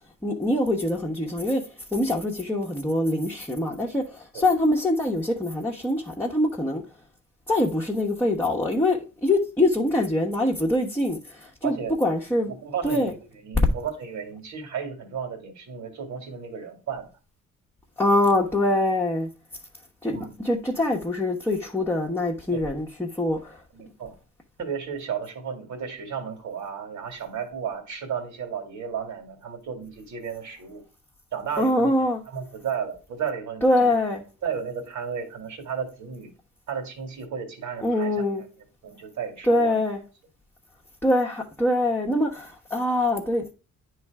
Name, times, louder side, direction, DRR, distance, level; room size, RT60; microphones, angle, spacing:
voice 1, 0.2-1.6 1.9-6.8 7.5-12.5 12.8-13.1 13.6-13.7 18.0-19.3 20.0-23.6 31.6-32.2 33.6-34.2 37.8-38.4 39.4-40.0 41.0-43.5, left 1 dB, 5° left, 1.1 m, -24 dB
voice 2, 11.6-11.9 12.5-17.1 20.1-20.3 22.5-22.6 23.7-24.1 24.6-30.8 31.3-33.9 34.4-36.3 36.7-38.2 38.8-39.8, right 7 dB, 70° right, 2.2 m, -33 dB
9.5 x 3.3 x 4.7 m
cardioid pair, 90°, 30 cm